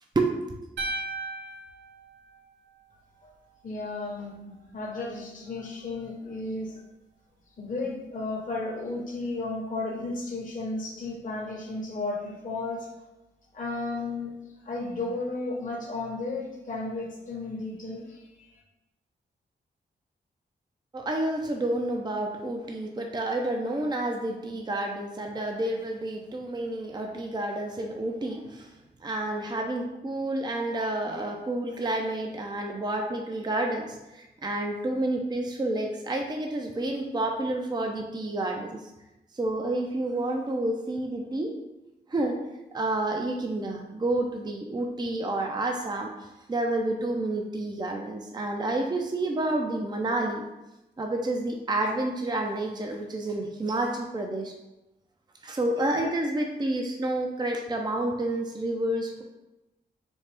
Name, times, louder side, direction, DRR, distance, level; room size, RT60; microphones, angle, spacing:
sound 1, 0.8-3.0, right 2 dB, 75° right, 0.6 m, -36 dB
voice 1, 3.6-6.8 7.6-12.9 13.5-14.3 14.6-18.6, left 2 dB, 45° left, -3 dB, 1.0 m, -34 dB
voice 2, 20.9-28.7 29.0-38.8 39.3-41.5 42.1-42.4 42.7-50.4 51.0-54.5 55.4-59.2, right 2 dB, 25° right, 2 dB, 0.5 m, -29 dB
4.3 x 2.4 x 3.4 m, 0.98 s
cardioid pair, 55°, 18 cm